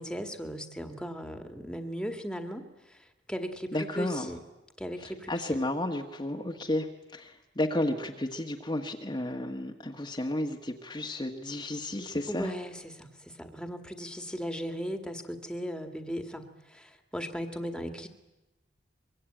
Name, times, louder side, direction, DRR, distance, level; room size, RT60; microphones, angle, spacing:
voice 1, 0.0-4.4 4.8-5.7 12.3-18.1, equal, 5° left, 6 dB, 1.9 m, -37 dB
voice 2, 3.7-4.3 5.0-12.5, left 1 dB, 25° left, 1 dB, 1.4 m, -32 dB
23.5 x 23.5 x 9.0 m, 1.0 s
head